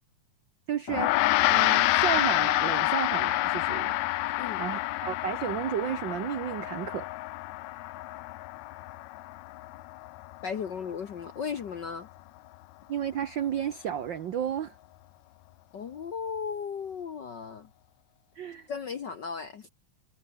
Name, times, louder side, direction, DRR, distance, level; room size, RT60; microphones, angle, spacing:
voice 1, 0.7-1.2 1.5-3.9 4.3-7.1 12.9-14.7 18.4-18.7, right 9 dB, 75° right, 1.0 m, -32 dB
Gong, 0.9-10.5, left 18 dB, 75° left, 1.9 m, -28 dB
voice 2, 10.4-12.1 15.7-17.7 18.7-19.7, left 6 dB, 60° left, 1.2 m, -36 dB
omnidirectional pair, 3.4 m